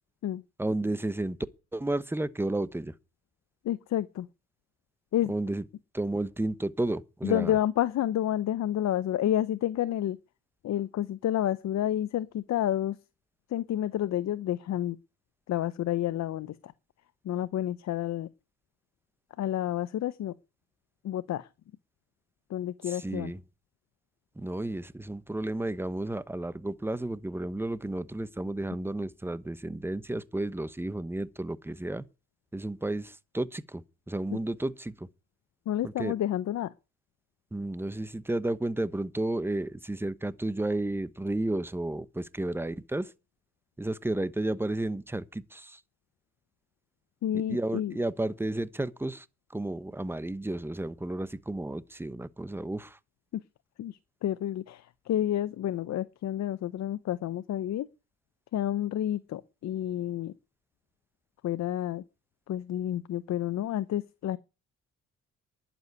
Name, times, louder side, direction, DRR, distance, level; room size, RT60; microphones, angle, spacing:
voice 1, 0.6-1.4 1.7-2.9 5.3-5.6 5.9-7.5 22.9-23.4 24.4-32.0 32.5-35.1 36.0-36.1 37.5-43.1 43.8-45.8 47.5-49.2 49.5-53.0, right 1 dB, 10° right, 0.9 m, -32 dB
voice 2, 3.6-4.3 5.1-5.3 7.2-10.2 10.6-13.0 13.5-15.0 15.5-16.7 17.2-18.3 19.4-20.3 21.0-21.5 22.5-23.3 35.7-36.7 47.2-48.0 53.3-53.4 53.8-57.9 58.5-60.3 61.4-62.0 62.5-64.4, left 12 dB, 65° left, 0.8 m, -30 dB
11.0 x 7.1 x 9.5 m
cardioid pair, 90°, 30 cm